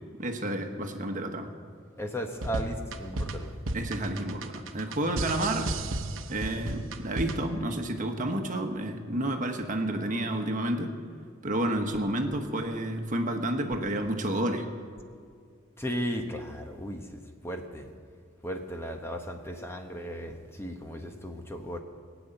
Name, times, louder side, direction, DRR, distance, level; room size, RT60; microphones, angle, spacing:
voice 1, 0.2-1.5 3.7-5.7 6.3-10.9 11.4-14.7, right 1 dB, 40° right, 5 dB, 1.3 m, -30 dB
voice 2, 2.0-3.5 15.8-17.9 18.4-21.8, equal, 15° left, 4 dB, 1.0 m, -36 dB
sound 1, 2.3-7.6, right 2 dB, 85° right, 0.9 m, -34 dB
20.0 x 7.0 x 9.0 m, 2.3 s
head